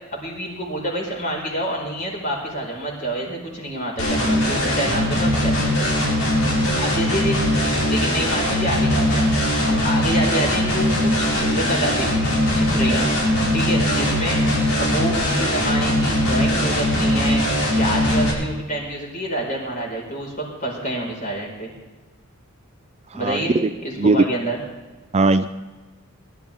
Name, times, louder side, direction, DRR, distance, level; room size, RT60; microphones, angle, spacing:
voice 1, 0.1-5.9 6.8-7.4 7.8-9.3 9.7-13.1 13.5-14.4 14.8-17.4 17.7-21.7 23.1-23.5 23.8-24.6, equal, 40° left, -1 dB, 5.1 m, -27 dB
sound 1, 4.0-18.3, left 1 dB, 80° left, 5.3 m, -20 dB
voice 2, 23.1-23.7 24.0-24.2 25.1-25.5, right 3 dB, 30° right, 10 dB, 0.5 m, -19 dB
22.0 x 12.5 x 3.6 m, 1.2 s
head